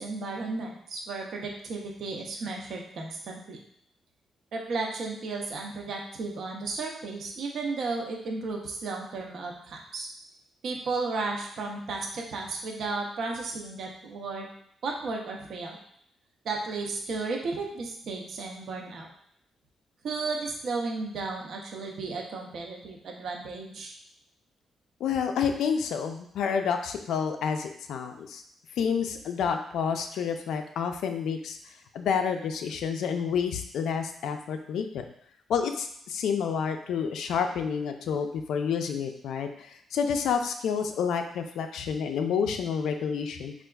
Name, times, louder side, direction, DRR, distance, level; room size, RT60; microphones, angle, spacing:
voice 1, 0.0-3.6 4.5-10.1 10.6-14.5 14.8-15.8 16.4-19.1 20.0-23.9, right 3 dB, 55° right, 0 dB, 0.4 m, -34 dB
voice 2, 25.0-28.4 28.8-31.6 31.9-35.0 35.5-43.5, left 6 dB, 90° left, 6 dB, 0.3 m, -29 dB
4.4 x 2.3 x 2.2 m, 0.68 s
wide cardioid pair, 175°, 0 cm